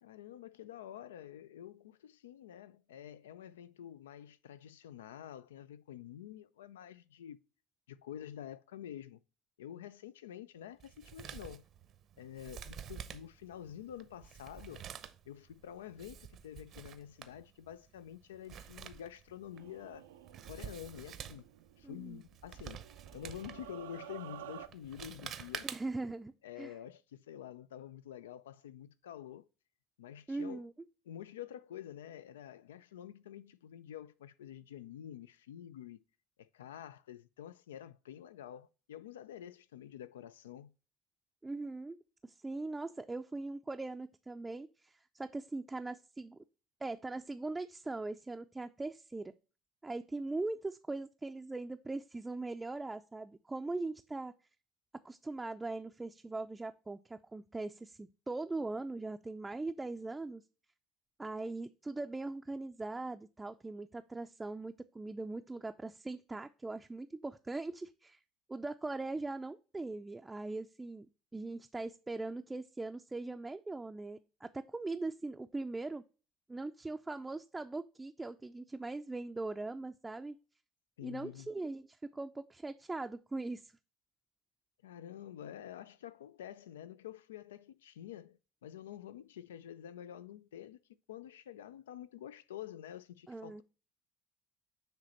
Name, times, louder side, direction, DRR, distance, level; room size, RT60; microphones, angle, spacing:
voice 1, 0.0-7.4 7.9-9.2 9.6-11.6 12.2-14.8 15.3-20.1 20.4-21.5 21.8-22.8 23.1-25.7 26.4-29.4 30.0-30.7 31.1-36.0 36.4-40.7 81.0-81.5 84.8-90.8 91.1-93.6, left 10 dB, 90° left, 0.3 m, -48 dB
Male speech man speaking, 10.8-26.1, right 9 dB, 55° right, 0.7 m, -49 dB
sound 1, 19.5-22.1 22.5-24.7, right 12 dB, 90° right, 0.5 m, -52 dB
voice 2, 21.8-22.2 25.6-26.8 30.3-30.7 41.4-46.4 46.8-49.3 49.8-54.3 55.0-60.4 61.2-68.2 68.5-71.1 71.3-76.0 76.5-80.4 81.0-83.7 93.3-93.6, right 2 dB, 15° right, 0.4 m, -40 dB
7.5 x 3.1 x 4.3 m
hypercardioid pair, 75°, 0 cm